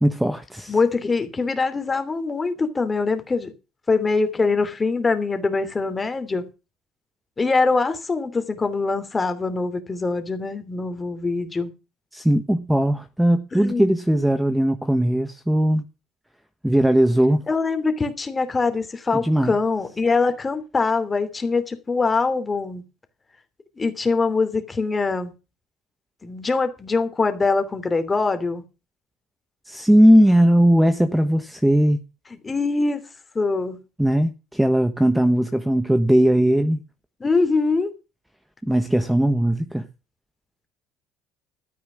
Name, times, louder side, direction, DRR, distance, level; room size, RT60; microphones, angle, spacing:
voice 1, 0.0-0.8 12.1-15.8 16.6-17.4 19.1-19.5 29.7-32.0 34.0-36.8 38.6-39.9, equal, 5° right, 1.2 m, -18 dB
voice 2, 0.7-3.5 3.9-6.5 7.4-11.7 13.5-13.9 17.5-22.8 23.8-25.3 26.2-28.6 32.4-33.0 33.3-33.8 37.2-37.9, left 4 dB, 20° left, 2.9 m, -23 dB
13.0 x 9.6 x 6.3 m
cardioid pair, 110°, 0 cm